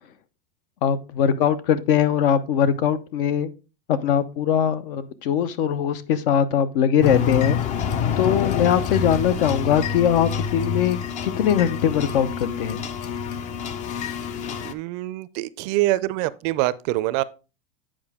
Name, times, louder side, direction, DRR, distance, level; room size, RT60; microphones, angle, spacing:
voice 1, 0.8-3.5 3.9-7.6 8.2-12.8, left 8 dB, 70° left, 0.9 m, -21 dB
sound 1, 7.0-14.7, left 7 dB, 25° left, 0.4 m, -27 dB
voice 2, 14.6-17.2, right 17 dB, 45° right, 0.4 m, -25 dB
8.8 x 4.9 x 3.5 m
supercardioid pair, 145°, 29 cm